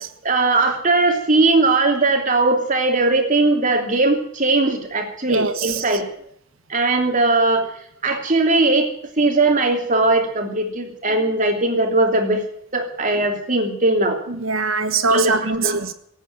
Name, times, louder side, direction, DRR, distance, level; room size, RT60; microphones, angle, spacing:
voice 1, 0.2-6.1 6.7-7.7 8.0-8.9 9.2-12.4 12.7-14.2 15.0-15.8, right 2 dB, 40° right, 2.9 m, -19 dB
voice 2, 5.3-5.8 14.3-15.9, right 4 dB, 75° right, 1.5 m, -22 dB
17.5 x 8.9 x 8.9 m
head